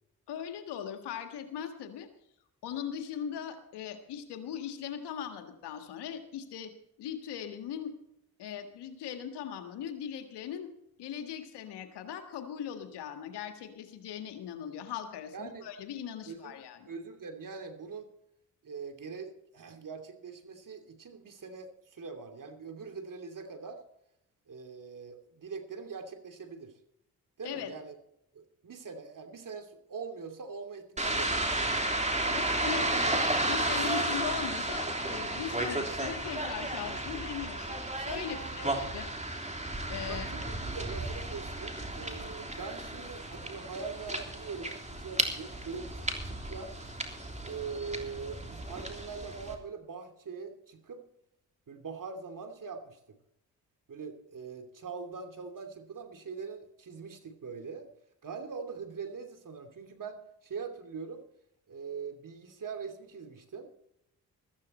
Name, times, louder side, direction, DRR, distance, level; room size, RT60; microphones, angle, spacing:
voice 1, 0.3-2.1 2.6-6.7 7.0-7.9 8.4-10.7 11.0-16.9 27.4-27.7 32.3-39.1 39.9-40.3, left 8 dB, 85° left, 7 dB, 1.8 m, -39 dB
voice 2, 15.3-15.7 16.3-16.5 16.9-18.1 18.6-23.8 24.5-26.7 27.4-28.0 28.3-31.3 32.2-33.9 38.2-38.7 40.1-46.7 47.4-51.0 51.7-53.0 53.9-57.9 58.2-61.2 61.7-63.7, right 5 dB, 55° right, 5 dB, 2.8 m, -42 dB
sound 1, 31.0-49.5, right 1 dB, 15° right, 3.3 m, -33 dB
15.0 x 14.0 x 4.3 m, 0.80 s
supercardioid pair, 45°, 40 cm